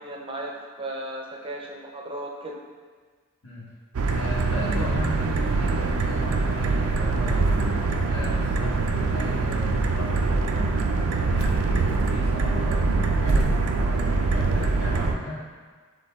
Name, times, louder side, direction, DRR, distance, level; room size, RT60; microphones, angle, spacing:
voice 1, 0.0-2.5, right 1 dB, 25° right, -1 dB, 0.5 m, -35 dB
sound 1, 3.9-15.1, right 3 dB, 75° right, 0.4 m, -23 dB
voice 2, 4.1-7.6 8.1-10.8 11.2-15.4, left 1 dB, 75° left, -6 dB, 1.3 m, -36 dB
6.5 x 2.2 x 3.5 m, 1.5 s
head